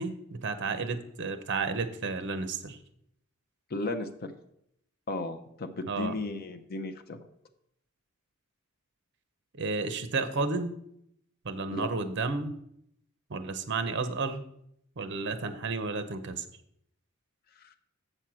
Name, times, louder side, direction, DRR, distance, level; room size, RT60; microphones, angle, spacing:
voice 1, 0.0-2.8 5.9-6.1 9.6-10.7 11.4-12.5 13.3-14.4 15.0-16.4, right 4 dB, 55° right, 9 dB, 0.7 m, -32 dB
voice 2, 3.7-4.3 5.1-7.2 11.7-11.9 17.6-17.7, left 2 dB, 45° left, 6 dB, 0.6 m, -35 dB
7.8 x 4.4 x 6.2 m, 0.74 s
head